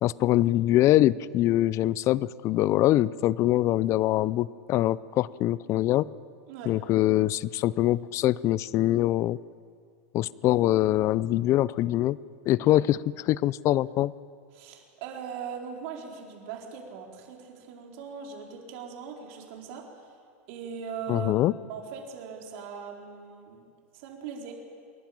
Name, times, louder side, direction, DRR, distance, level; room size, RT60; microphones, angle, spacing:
voice 1, 0.0-6.1 6.7-9.4 10.1-12.2 12.5-14.1 21.1-21.5, left 14 dB, 40° left, 20 dB, 0.5 m, -23 dB
voice 2, 14.5-19.9 20.5-21.3 21.7-23.7 23.9-24.5, right 6 dB, 60° right, 0 dB, 4.3 m, -40 dB
28.0 x 11.5 x 8.8 m, 2.1 s
hypercardioid pair, 120°, 8 cm